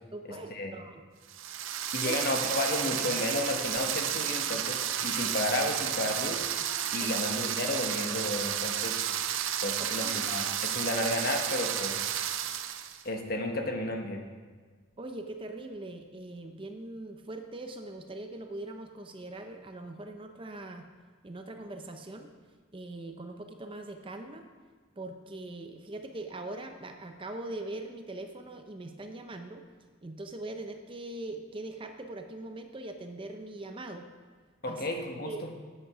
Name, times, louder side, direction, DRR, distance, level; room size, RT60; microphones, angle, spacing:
voice 1, 0.1-1.0 2.0-2.2 7.0-7.2 10.0-10.2 15.0-20.9 21.2-22.3 22.7-24.4 25.0-29.6 30.0-34.0 34.7-34.8 35.3-35.6, right 2 dB, 25° right, 5 dB, 0.6 m, -41 dB
sound 1, 1.3-13.0, right 10 dB, 70° right, 0.6 m, -32 dB
voice 2, 1.9-6.5 6.9-9.0 9.6-12.0 13.0-14.2 34.6-35.5, left 1 dB, 45° left, 3 dB, 1.2 m, -32 dB
10.5 x 8.8 x 4.8 m, 1.5 s
head